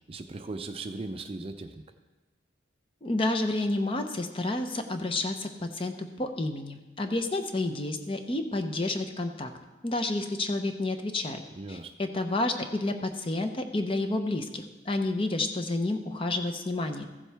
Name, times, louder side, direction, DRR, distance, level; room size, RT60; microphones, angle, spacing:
voice 1, 0.1-1.8 11.6-11.9, right 3 dB, 30° right, 8 dB, 0.5 m, -38 dB
voice 2, 3.0-9.5 9.8-11.4 11.7-17.0, left 2 dB, 30° left, 6 dB, 0.7 m, -30 dB
15.0 x 7.4 x 3.4 m, 1.1 s
head